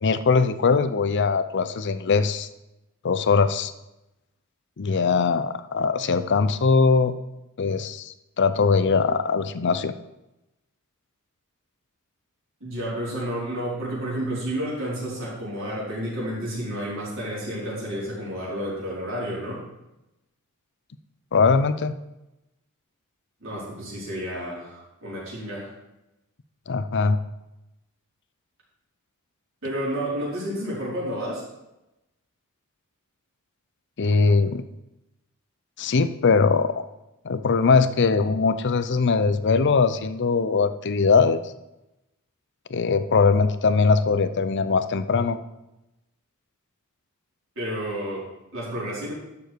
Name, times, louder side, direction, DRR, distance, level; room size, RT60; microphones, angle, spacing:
voice 1, 0.0-2.5 3.0-3.7 4.8-7.1 7.6-9.9 21.3-21.9 26.7-27.2 34.0-34.6 35.8-36.7 37.2-41.4 42.7-45.4, left 4 dB, 55° left, 12 dB, 0.6 m, -21 dB
voice 2, 12.6-19.7 23.4-25.7 29.6-31.5 47.6-49.1, equal, 65° right, -6 dB, 4.5 m, -31 dB
11.5 x 7.0 x 4.6 m, 0.93 s
head